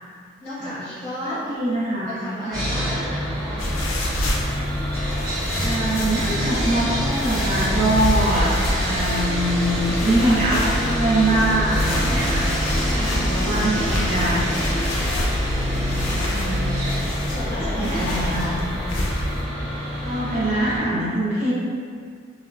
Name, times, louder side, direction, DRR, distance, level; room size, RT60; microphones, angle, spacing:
voice 1, 0.4-1.5 2.1-3.8 15.6-16.4 17.3-18.6, left 1 dB, 10° left, -12 dB, 0.6 m, -34 dB
voice 2, 1.2-2.2 2.5-2.7 5.6-12.5 12.9-14.9 16.1-16.6 17.5-18.7 20.0-21.5, right 1 dB, 35° right, -7 dB, 0.6 m, -24 dB
Sawing, 2.5-20.8, equal, 80° right, 1.4 m, -26 dB
sound 1, 3.6-19.4, left 1 dB, 75° left, 0.4 m, -27 dB
3.1 x 2.1 x 2.4 m, 2.1 s
head